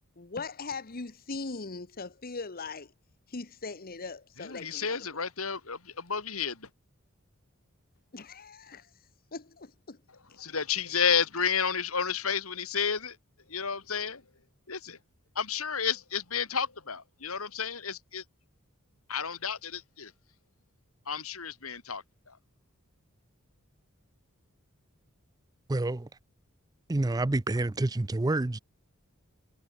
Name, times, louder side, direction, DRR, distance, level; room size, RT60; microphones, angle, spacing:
voice 1, 0.2-2.9 3.3-5.3 8.1-8.9 9.3-10.0, left 4 dB, 45° left, 1.2 m, -40 dB
voice 2, 4.4-6.7 10.1-13.2 13.5-14.2 14.7-15.0 15.4-18.2 19.1-20.1 21.1-22.4, left 6 dB, 85° left, 3.6 m, -31 dB
voice 3, 25.7-26.1 26.9-28.6, right 2 dB, 20° right, 0.5 m, -28 dB
head